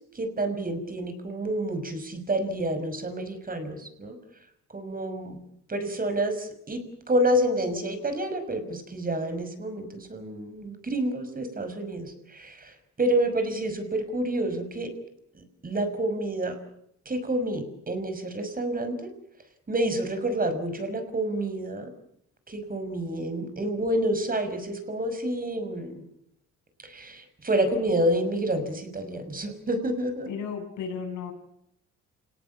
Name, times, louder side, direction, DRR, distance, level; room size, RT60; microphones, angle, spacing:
voice 1, 0.1-4.2 4.7-5.4 5.7-6.8 7.1-14.9 15.6-16.6 17.1-19.1 19.7-21.9 22.5-25.9 26.8-30.3, right 1 dB, 30° right, 8 dB, 5.9 m, -28 dB
voice 2, 30.3-31.3, left 6 dB, 80° left, 4 dB, 7.9 m, -34 dB
28.5 x 18.5 x 8.6 m, 0.75 s
cardioid pair, 90°, 30 cm